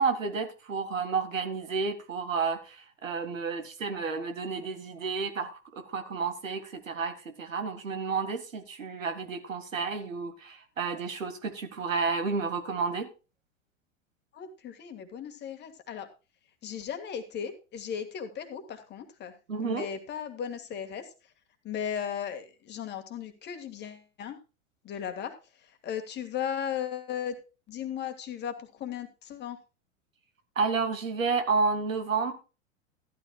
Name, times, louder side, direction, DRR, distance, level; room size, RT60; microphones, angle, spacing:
voice 1, 0.0-13.1 19.5-19.9 30.6-32.3, right 4 dB, 75° right, 1.9 m, -31 dB
voice 2, 14.3-16.1 16.6-19.3 19.6-21.3 21.6-24.4 24.8-27.4 27.7-29.6, left 8 dB, 25° left, 1.8 m, -36 dB
14.0 x 12.0 x 2.3 m
figure-of-eight pair, 95°, 40 cm